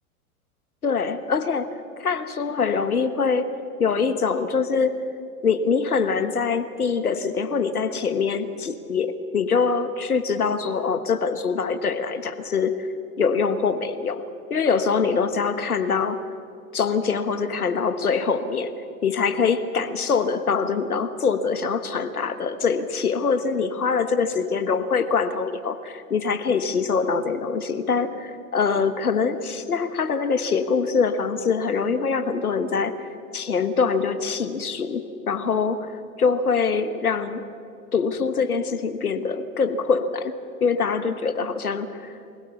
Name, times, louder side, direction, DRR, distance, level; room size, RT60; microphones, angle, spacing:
voice 1, 0.8-3.5 3.8-5.0 5.4-12.9 13.2-16.2 16.7-33.0 33.3-37.4 37.9-42.1, left 5 dB, 85° left, 11 dB, 1.3 m, -24 dB
23.5 x 16.5 x 7.0 m, 2.5 s
figure-of-eight pair, 95°, 43 cm